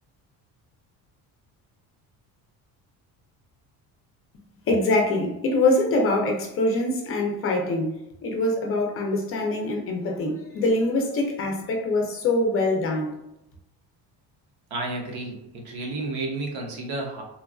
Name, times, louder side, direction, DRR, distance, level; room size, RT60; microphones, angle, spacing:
voice 1, 4.7-7.9 8.2-13.2, left 2 dB, 35° left, 0.5 m, -24 dB
voice 2, 14.7-17.2, right 2 dB, 75° right, 0.9 m, -31 dB
3.0 x 2.5 x 2.3 m
cardioid pair, 160°, 38 cm